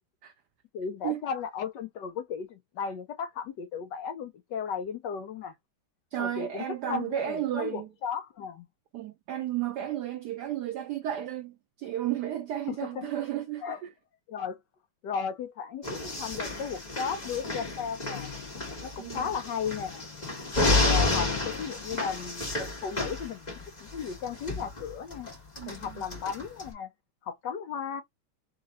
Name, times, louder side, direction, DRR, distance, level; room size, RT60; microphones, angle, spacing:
voice 1, 0.7-5.5 6.2-8.7 12.7-13.1 13.6-13.8 14.3-14.6 15.0-18.3 18.8-20.1 20.8-25.3 25.7-26.9 27.2-28.0, left 6 dB, 70° left, 1.1 m, -35 dB
voice 2, 6.1-7.9 8.9-13.9 19.0-19.3 20.6-20.9 25.6-26.0, right 11 dB, 85° right, 0.9 m, -33 dB
sound 1, 15.8-26.7, left 2 dB, 20° left, 1.9 m, -31 dB
3.8 x 3.2 x 4.0 m
omnidirectional pair, 2.4 m